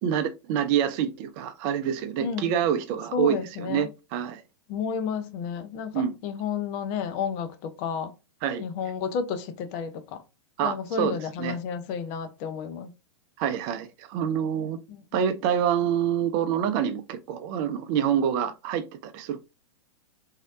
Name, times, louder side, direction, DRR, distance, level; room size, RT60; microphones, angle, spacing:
voice 1, 0.0-4.4 5.9-6.1 8.4-8.6 10.6-11.6 13.4-14.8 15.1-19.4, right 9 dB, 40° right, 0.5 m, -27 dB
voice 2, 2.2-2.5 3.1-3.9 4.7-8.1 8.6-10.2 10.6-12.9 14.9-15.0, left 6 dB, 40° left, 0.5 m, -31 dB
3.1 x 2.8 x 2.4 m
hypercardioid pair, 115°, 15 cm